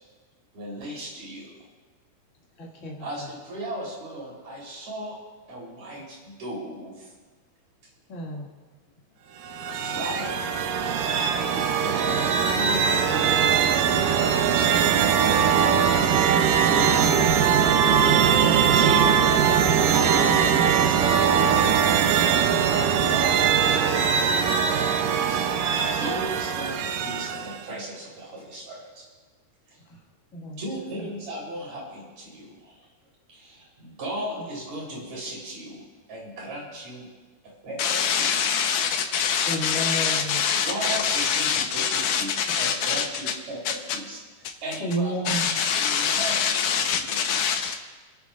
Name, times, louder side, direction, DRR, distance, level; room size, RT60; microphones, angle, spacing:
voice 1, 0.5-1.6 3.0-5.2 5.5-7.1 9.7-10.5 11.3-15.3 18.7-19.3 19.7-21.7 23.0-25.4 25.8-29.0 29.7-29.8 30.6-32.8 33.3-37.1 37.6-38.6 40.5-43.6 43.9-44.2 44.6-47.4, right 1 dB, 45° right, -4 dB, 4.6 m, -36 dB
voice 2, 2.6-3.3 8.1-8.5 22.4-23.2 29.9-30.0 30.3-30.6 39.5-40.4 44.8-45.5 46.0-46.1, right 1 dB, 30° left, -3 dB, 1.6 m, -33 dB
sound 1, 9.4-27.6, right 7 dB, 75° right, 2.0 m, -21 dB
voice 3, 37.8-43.1 43.7-43.8 45.3-47.7, left 7 dB, 70° left, 4 dB, 2.0 m, -24 dB
29.5 x 11.5 x 2.5 m, 1.4 s
omnidirectional pair, 4.5 m